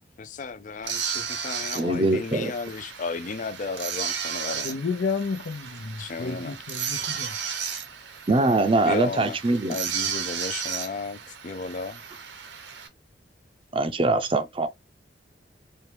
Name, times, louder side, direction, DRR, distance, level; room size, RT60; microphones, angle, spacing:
voice 1, 0.2-4.7 6.0-6.6 8.8-9.4 9.7-11.2 11.4-12.0, left 4 dB, 45° left, 0.4 m, -34 dB
sound 1, 0.8-12.9, right 7 dB, 85° right, 0.8 m, -34 dB
voice 2, 1.7-2.5 8.3-9.8 13.7-14.7, right 2 dB, 30° right, 0.5 m, -23 dB
voice 3, 4.6-7.3, left 4 dB, 85° left, 0.7 m, -31 dB
4.4 x 2.3 x 3.2 m
head